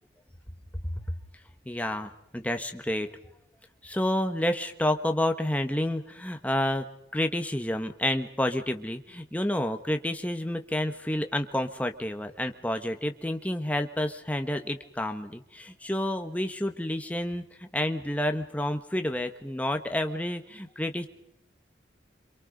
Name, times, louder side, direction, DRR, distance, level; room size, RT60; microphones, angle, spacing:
voice 1, 1.6-3.1 3.8-6.8 7.1-21.1, left 1 dB, 10° left, 6 dB, 1.4 m, -29 dB
28.0 x 26.5 x 5.3 m, 0.77 s
head